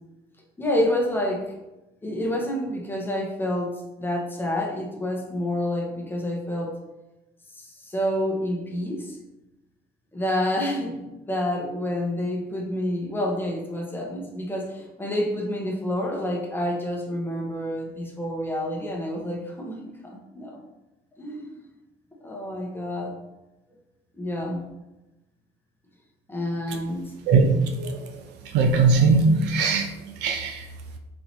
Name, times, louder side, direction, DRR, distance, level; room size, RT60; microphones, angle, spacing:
voice 1, 0.6-1.6 2.0-6.8 7.5-9.2 10.1-20.6 21.2-21.5 22.2-23.1 24.1-24.6 26.3-27.1, left 1 dB, 10° left, 0 dB, 1.0 m, -28 dB
voice 2, 28.5-29.9 30.2-30.6, right 4 dB, 85° right, 4 dB, 0.7 m, -19 dB
4.2 x 2.9 x 4.4 m, 1.0 s
cardioid pair, 110°, 17 cm